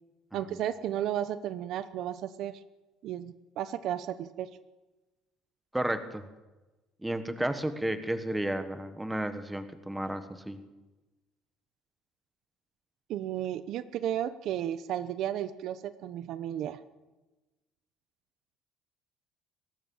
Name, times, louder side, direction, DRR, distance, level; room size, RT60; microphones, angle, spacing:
voice 1, 0.3-2.6 3.0-4.5 13.1-16.8, right 11 dB, 50° right, 13 dB, 0.9 m, -33 dB
voice 2, 5.7-6.2 7.0-10.6, right 1 dB, 5° right, 9 dB, 1.4 m, -32 dB
23.5 x 19.0 x 7.2 m, 1.1 s
cardioid pair, 175°, 0 cm